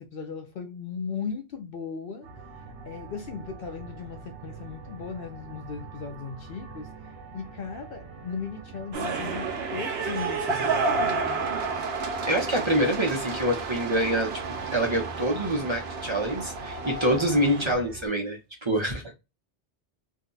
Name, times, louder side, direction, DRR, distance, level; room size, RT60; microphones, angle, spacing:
voice 1, 0.0-2.3 2.8-11.2, left 5 dB, 60° left, 0.7 m, -37 dB
sound 1, 2.2-18.1, right 3 dB, 85° right, 1.0 m, -44 dB
sound 2, 8.9-17.7, right 4 dB, 65° right, 0.9 m, -31 dB
voice 2, 12.3-14.4 14.7-19.1, right 1 dB, 30° right, 0.7 m, -26 dB
2.7 x 2.2 x 3.8 m
omnidirectional pair, 1.2 m